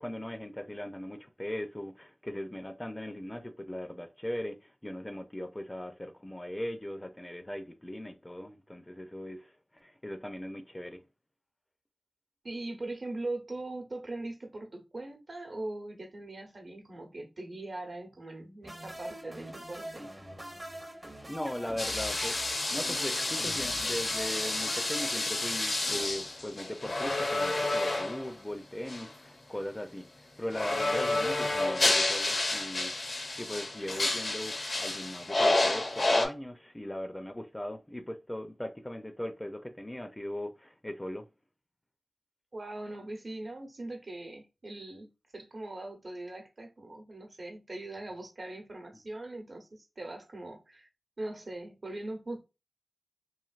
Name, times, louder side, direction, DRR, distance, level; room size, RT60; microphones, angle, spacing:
voice 1, 0.0-11.0 21.3-22.4 22.7-41.2, left 1 dB, 20° left, 0.5 m, -39 dB
voice 2, 12.4-20.1 42.5-50.9 51.2-52.4, right 2 dB, 60° right, 0.9 m, -41 dB
sound 1, 18.6-25.9, right 1 dB, 20° right, 0.6 m, -44 dB
sound 2, 21.8-28.3 28.9-29.1 30.5-36.3, left 2 dB, 70° left, 0.8 m, -30 dB
3.2 x 2.5 x 2.4 m
wide cardioid pair, 55°, 0 cm